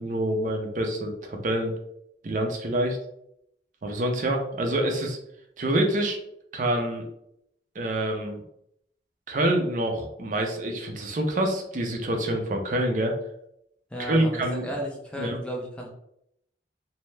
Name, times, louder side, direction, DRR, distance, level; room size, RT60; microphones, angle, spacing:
voice 1, 0.0-1.7 2.2-3.0 3.8-5.2 5.6-6.2 6.5-7.0 7.8-8.4 9.3-13.2 14.1-14.7 15.2-15.4, right 1 dB, 45° right, 3 dB, 0.5 m, -26 dB
voice 2, 13.9-15.9, equal, 5° left, -1 dB, 0.5 m, -34 dB
2.7 x 2.1 x 3.2 m, 0.76 s
head